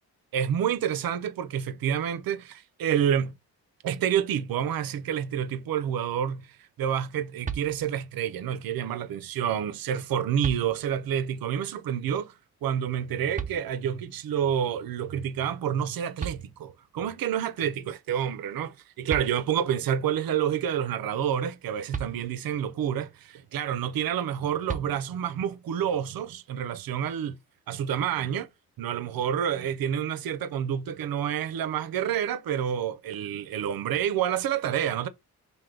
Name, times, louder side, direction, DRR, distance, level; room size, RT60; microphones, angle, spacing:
voice 1, 0.3-3.3 3.8-12.3 12.6-27.4 27.7-28.5 28.8-35.1, right 9 dB, 65° right, 0.6 m, -28 dB
sound 1, 7.4-8.2 9.7-9.8 10.4-11.2 13.4-14.1 15.9-16.0 16.2-17.0 18.7-18.8 19.1-19.8 21.9-22.7 24.7-25.4, right 7 dB, 20° right, 0.5 m, -37 dB
3.2 x 2.8 x 3.7 m
cardioid pair, 70°, 37 cm